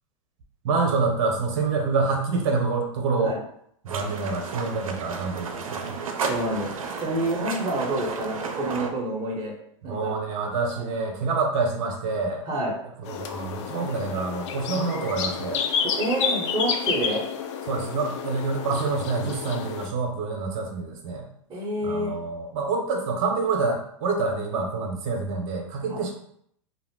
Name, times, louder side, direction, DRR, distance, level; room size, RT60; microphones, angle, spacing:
voice 1, 0.6-3.4 3.8-6.0 9.8-12.5 13.0-15.6 17.6-21.3 21.8-26.1, right 4 dB, 55° right, 2 dB, 0.8 m, -27 dB
sound 1, 3.9-8.9, right 5 dB, 85° right, 0.5 m, -33 dB
voice 2, 6.3-6.7 7.0-9.6 9.8-10.2 10.7-10.9 12.5-12.7 15.8-17.2 21.5-22.2 25.9-26.0, right 1 dB, 25° right, -2 dB, 0.9 m, -28 dB
sound 2, 13.0-19.9, left 7 dB, 60° left, 0.4 m, -30 dB
2.6 x 2.0 x 3.6 m, 0.69 s
hypercardioid pair, 105°, 17 cm